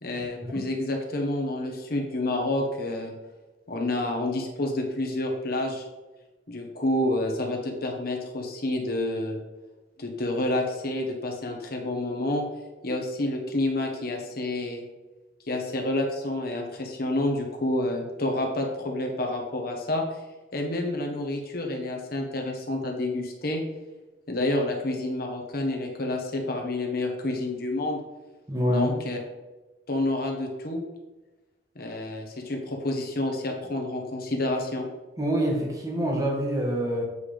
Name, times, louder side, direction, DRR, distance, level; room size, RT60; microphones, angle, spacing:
voice 1, 0.0-3.1 3.7-5.8 6.5-9.4 10.0-12.5 12.8-14.9 15.5-20.0 20.5-23.6 24.3-28.0 28.7-29.2 29.9-30.8 31.7-34.9, left 1 dB, 60° left, 2 dB, 1.3 m, -29 dB
voice 2, 28.5-29.0 35.2-37.0, equal, 20° right, -1 dB, 1.4 m, -26 dB
8.2 x 3.6 x 5.1 m, 1.1 s
head